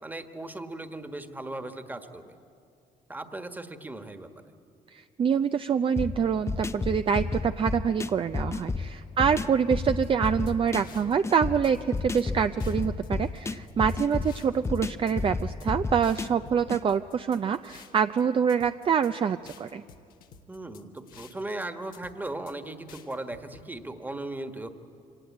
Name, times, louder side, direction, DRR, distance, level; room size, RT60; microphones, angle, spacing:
voice 1, 0.0-2.4 3.1-4.3 9.2-9.5 12.2-12.4 20.5-24.7, right 2 dB, 10° right, 8 dB, 1.5 m, -38 dB
voice 2, 4.9-19.8, right 7 dB, 40° right, 10 dB, 0.5 m, -26 dB
sound 1, 6.0-16.8, left 3 dB, 20° left, 0.6 m, -32 dB
sound 2, 10.0-11.4 11.6-12.3 12.6-14.8 15.1-15.7 16.0-18.2 18.5-19.1 19.5-21.6 21.9-22.5 22.9-23.6, left 7 dB, 80° left, 1.3 m, -52 dB
25.0 x 18.0 x 8.5 m, 2.5 s
cardioid pair, 85°, 14 cm